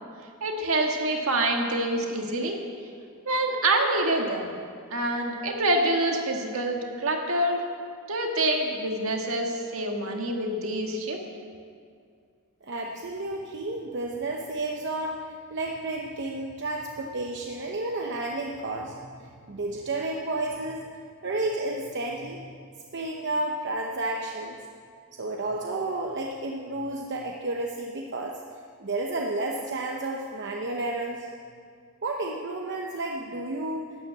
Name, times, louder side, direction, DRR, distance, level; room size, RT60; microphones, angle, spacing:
voice 1, 0.4-2.6 3.3-4.5 4.9-7.7 8.1-11.2, right 1 dB, 70° right, 2 dB, 1.7 m, -26 dB
voice 2, 12.6-15.2 15.5-19.0 19.5-20.8 21.2-22.6 22.9-24.6 25.1-28.4 28.8-31.3 32.0-33.8, right 2 dB, 55° right, 1 dB, 0.9 m, -31 dB
12.0 x 9.4 x 7.5 m, 2.2 s
head